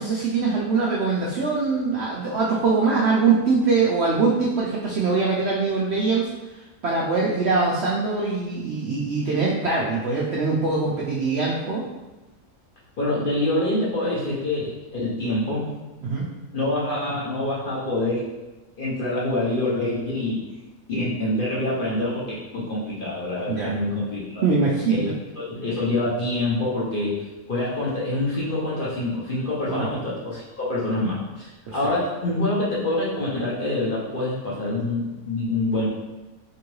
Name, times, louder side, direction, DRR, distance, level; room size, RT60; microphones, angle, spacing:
voice 1, 0.0-6.3 6.8-11.8 16.0-16.3 23.5-23.7 24.4-25.1 29.7-29.9 31.7-31.8, right 4 dB, 65° right, -5 dB, 0.6 m, -23 dB
voice 2, 13.0-15.7 16.5-18.3 18.8-20.4 20.9-24.4 24.9-25.1 25.4-27.2 27.5-35.9, left 2 dB, 45° left, -7 dB, 0.8 m, -26 dB
3.5 x 3.0 x 3.1 m, 1.1 s
omnidirectional pair, 1.6 m